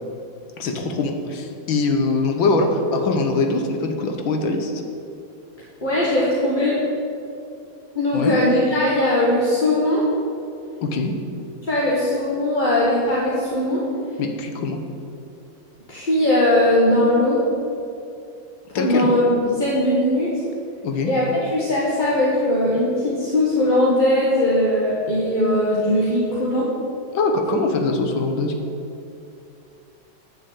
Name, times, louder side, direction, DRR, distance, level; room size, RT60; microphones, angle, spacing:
voice 1, 0.6-4.8 8.1-8.3 10.8-11.1 14.2-14.8 18.8-19.1 20.8-21.1 27.1-28.5, left 3 dB, 80° left, 4 dB, 1.9 m, -22 dB
voice 2, 5.8-6.8 7.9-10.0 11.6-13.8 15.9-17.4 18.7-20.4 21.0-26.7, left 1 dB, 25° left, -6 dB, 1.6 m, -19 dB
9.9 x 6.7 x 8.6 m, 2.6 s
omnidirectional pair, 2.1 m